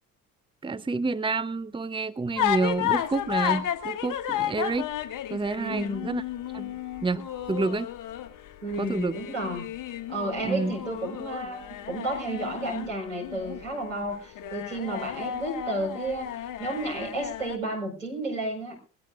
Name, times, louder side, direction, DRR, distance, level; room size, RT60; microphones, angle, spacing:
voice 1, 0.6-4.9 5.3-6.2 6.5-6.6 7.0-7.2 7.5-7.9 8.8-9.2 10.4-10.7, right 3 dB, 15° right, 14 dB, 0.9 m, -28 dB
sound 1, 2.4-17.6, left 11 dB, 55° left, 1.6 m, -33 dB
voice 2, 5.6-6.1 6.6-6.7 8.6-9.7 10.1-18.8, right 2 dB, 90° right, -1 dB, 4.9 m, -32 dB
21.5 x 16.5 x 2.5 m, 0.35 s
figure-of-eight pair, 50°, 38 cm